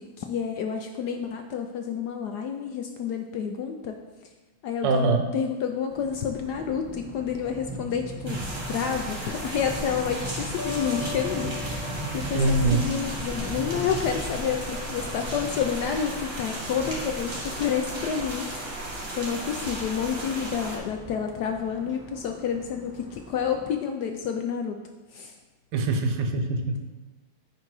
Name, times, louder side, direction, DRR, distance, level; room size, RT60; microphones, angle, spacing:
voice 1, 0.0-4.0 4.6-18.5 19.1-24.8 25.1-25.3, left 7 dB, 75° left, 5 dB, 1.0 m, -29 dB
voice 2, 4.8-5.3 12.3-12.9 25.7-26.8, right 3 dB, 75° right, 6 dB, 1.3 m, -23 dB
sound 1, 5.9-23.7, right 1 dB, 5° right, 0.9 m, -40 dB
sound 2, 8.3-20.8, right 1 dB, 40° right, 2.0 m, -35 dB
sound 3, 10.6-13.4, left 5 dB, 45° left, 0.7 m, -39 dB
9.3 x 3.8 x 4.7 m, 1.2 s
omnidirectional pair, 2.1 m